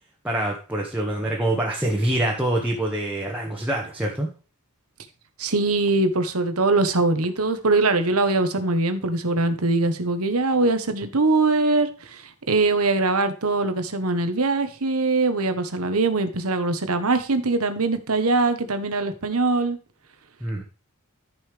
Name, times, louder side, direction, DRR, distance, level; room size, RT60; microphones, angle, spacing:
voice 1, 0.2-4.3 20.4-20.6, right 1 dB, 5° right, -3 dB, 1.5 m, -25 dB
voice 2, 5.4-12.2 12.5-19.8, right 3 dB, 75° right, 9 dB, 1.3 m, -22 dB
13.5 x 5.6 x 3.4 m, 0.36 s
head